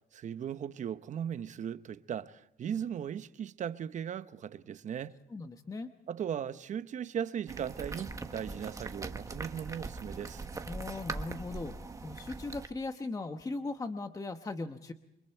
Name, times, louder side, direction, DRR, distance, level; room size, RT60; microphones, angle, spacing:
voice 1, 0.1-5.2 6.1-10.5, right 8 dB, 45° right, 0.9 m, -38 dB
voice 2, 5.3-5.9 10.7-14.9, left 3 dB, 20° left, 1.0 m, -39 dB
sound 1, 7.5-12.7, right 3 dB, 20° right, 1.3 m, -41 dB
29.0 x 23.5 x 4.5 m
cardioid pair, 110°, 17 cm